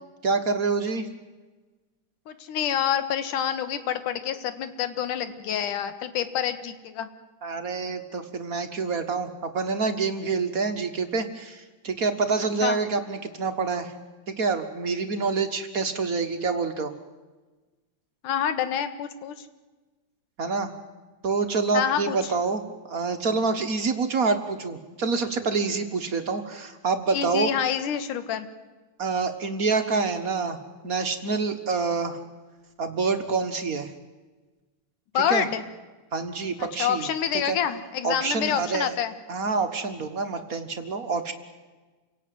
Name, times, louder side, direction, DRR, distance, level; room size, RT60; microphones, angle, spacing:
voice 1, 0.2-1.1 7.4-13.9 14.3-16.9 20.4-20.7 21.2-27.5 29.0-30.6 30.8-32.2 32.8-33.9 35.3-35.5 36.1-37.6 38.0-38.9 39.3-41.3, right 4 dB, 55° right, 7 dB, 1.0 m, -27 dB
voice 2, 2.3-7.1 12.6-12.8 18.2-19.4 21.7-22.2 27.1-28.5 35.1-35.6 36.8-39.1, left 9 dB, 85° left, 11 dB, 3.0 m, -27 dB
28.0 x 17.5 x 9.3 m, 1.3 s
omnidirectional pair, 3.6 m